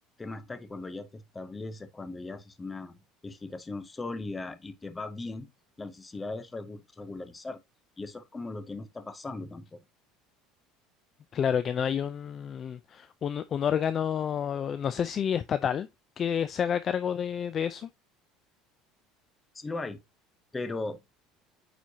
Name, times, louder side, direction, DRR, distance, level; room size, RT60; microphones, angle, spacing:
voice 1, 0.2-5.5 5.8-7.6 8.0-9.8 19.5-20.0 20.5-21.0, left 3 dB, 10° left, 0.7 m, -38 dB
voice 2, 11.3-15.9 16.2-17.9, left 8 dB, 30° left, 0.4 m, -29 dB
9.1 x 4.4 x 2.8 m
cardioid pair, 160°, 0 cm